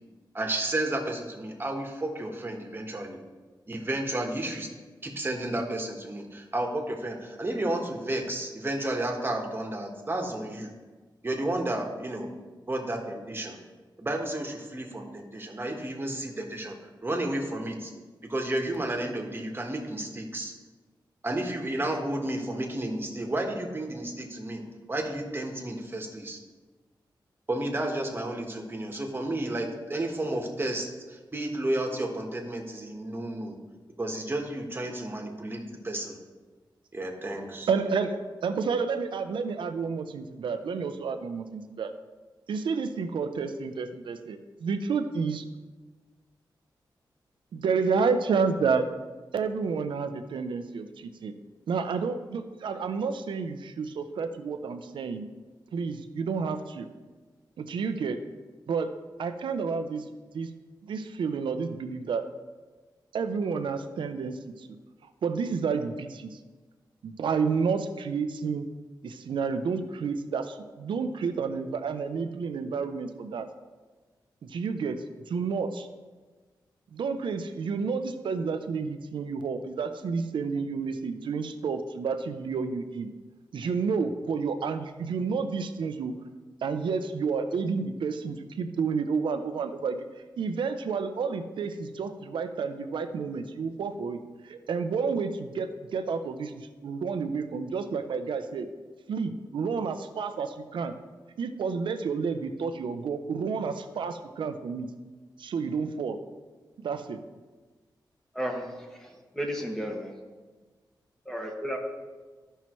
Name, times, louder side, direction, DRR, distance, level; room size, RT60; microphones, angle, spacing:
voice 1, 0.3-3.2 3.7-4.7 5.0-10.7 11.2-12.3 12.7-13.6 14.0-16.7 17.0-17.9 18.2-20.5 21.2-24.6 24.9-26.4 27.5-33.6 34.0-36.2 36.9-37.7, right 1 dB, 25° right, 2 dB, 1.4 m, -32 dB
voice 2, 37.7-41.9 42.5-45.4 47.5-48.9 49.3-51.3 51.7-55.3 55.7-56.9 57.6-58.2 58.7-58.9 59.2-60.0 60.3-60.5 60.8-62.3 63.1-64.7 65.2-66.4 67.0-68.7 69.0-73.5 74.4-75.9 76.9-83.1 83.5-86.1 86.6-90.0 90.4-98.7 99.1-100.9 101.4-104.9 105.4-106.2 106.8-107.2, right 5 dB, 90° right, 9 dB, 0.6 m, -30 dB
voice 3, 108.3-110.1 111.3-111.8, equal, 5° left, 1 dB, 1.5 m, -33 dB
13.5 x 5.6 x 3.1 m, 1.3 s
wide cardioid pair, 85°, 8 cm